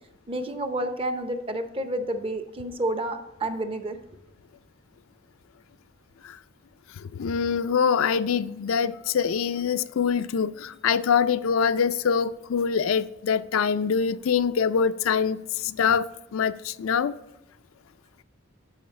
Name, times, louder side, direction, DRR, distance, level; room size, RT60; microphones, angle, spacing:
voice 1, 0.3-4.0, right 1 dB, 25° right, 0.6 m, -30 dB
voice 2, 7.1-17.1, left 6 dB, 90° left, 0.4 m, -24 dB
12.0 x 4.8 x 3.2 m
head